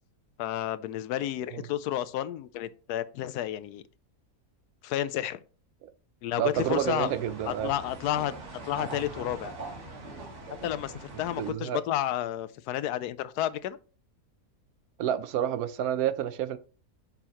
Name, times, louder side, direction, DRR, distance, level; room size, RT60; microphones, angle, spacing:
voice 1, 0.4-3.8 4.8-5.4 6.2-7.1 7.4-8.3 8.6-9.5 10.6-13.8, left 12 dB, 90° left, 1.1 m, -31 dB
voice 2, 6.4-7.7 11.4-11.8 15.0-16.6, right 10 dB, 75° right, 1.1 m, -29 dB
sound 1, 6.5-11.5, right 2 dB, 50° right, 1.7 m, -42 dB
7.0 x 5.7 x 2.9 m
omnidirectional pair, 1.6 m